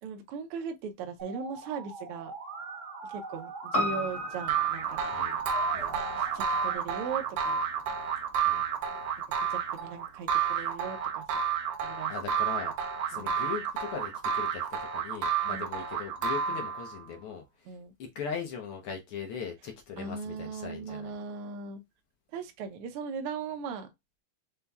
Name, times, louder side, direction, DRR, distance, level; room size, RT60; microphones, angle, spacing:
voice 1, 0.0-2.3 3.0-5.0 6.1-7.6 9.4-11.4 11.8-12.1 13.1-13.4 15.5-15.6 16.5-16.6 17.7-17.9 20.0-21.8 22.3-23.9, right 6 dB, 85° right, 1.2 m, -39 dB
Musical instrument, 1.2-6.8, right 4 dB, 45° right, 0.9 m, -41 dB
Piano, 3.7-8.2 8.5-8.6, left 1 dB, 55° left, 0.6 m, -36 dB
sound 1, 4.5-17.0, right 7 dB, 70° right, 1.7 m, -30 dB
voice 2, 12.1-12.8 13.1-21.1, left 6 dB, 70° left, 1.3 m, -39 dB
5.7 x 2.2 x 3.4 m
omnidirectional pair, 3.5 m